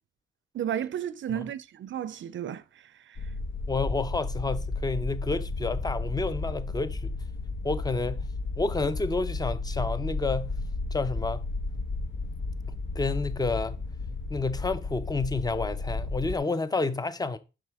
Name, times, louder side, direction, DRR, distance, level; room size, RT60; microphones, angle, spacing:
voice 1, 0.5-2.6 3.1-3.2, right 9 dB, 85° right, 0.4 m, -33 dB
sound 1, 3.2-16.4, left 3 dB, 75° left, 1.1 m, -33 dB
voice 2, 3.7-7.2 7.6-8.2 8.6-10.5 10.9-11.5 12.9-13.8 14.3-17.4, left 3 dB, 20° left, 0.6 m, -30 dB
7.5 x 6.0 x 3.5 m
cardioid pair, 85°, 19 cm